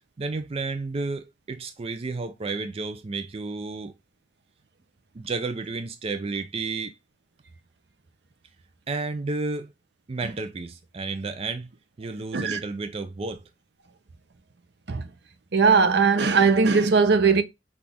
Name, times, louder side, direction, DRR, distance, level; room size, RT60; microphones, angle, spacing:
voice 1, 0.2-3.9 5.1-7.0 8.9-9.7 10.1-11.7 12.0-13.4, right 3 dB, 35° right, 0.4 m, -31 dB
voice 2, 15.5-17.4, right 5 dB, 70° right, 0.7 m, -19 dB
5.9 x 2.4 x 3.4 m
head